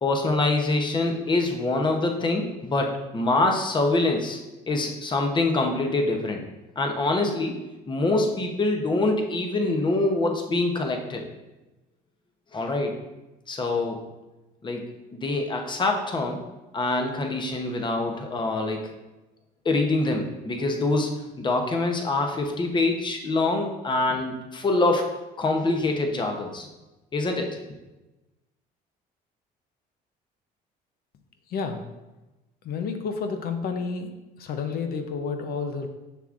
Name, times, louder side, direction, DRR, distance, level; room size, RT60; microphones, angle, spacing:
voice 1, 0.0-4.4 4.7-6.4 6.8-7.6 7.9-11.2 12.5-12.9 13.5-14.0 14.6-14.8 15.1-16.4 16.7-18.9 19.6-26.7 27.1-27.5, left 2 dB, 25° left, 3 dB, 0.9 m, -25 dB
voice 2, 31.5-31.8 32.6-34.1 34.4-35.9, left 5 dB, 65° left, 6 dB, 0.7 m, -30 dB
6.7 x 6.0 x 2.5 m, 1.0 s
cardioid pair, 110°, 17 cm